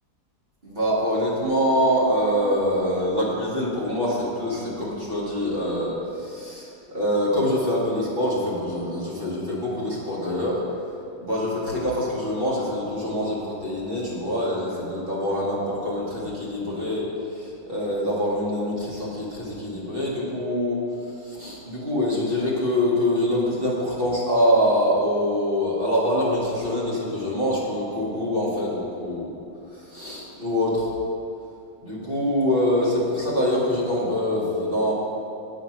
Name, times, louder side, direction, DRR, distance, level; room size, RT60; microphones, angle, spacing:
voice 1, 0.6-10.6 11.2-29.3 29.7-30.9 31.8-34.9, equal, 30° right, -6 dB, 1.6 m, -25 dB
8.0 x 5.1 x 5.8 m, 2.7 s
omnidirectional pair, 2.2 m